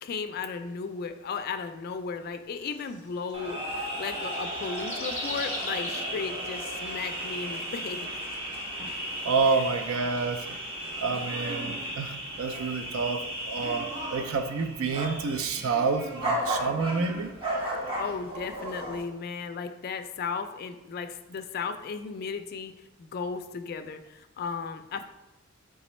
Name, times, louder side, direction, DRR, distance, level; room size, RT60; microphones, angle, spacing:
voice 1, 0.0-8.1 9.5-9.6 18.0-25.1, left 5 dB, 50° left, 8 dB, 0.3 m, -35 dB
sound 1, 2.6-6.3 6.9-7.0, left 2 dB, 10° left, 0.9 m, -39 dB
sound 2, 3.3-19.0, right 1 dB, 25° right, 0.9 m, -34 dB
voice 2, 9.2-10.5 11.0-17.3, right 4 dB, 70° right, 8 dB, 0.4 m, -28 dB
4.1 x 3.6 x 3.0 m, 0.95 s
head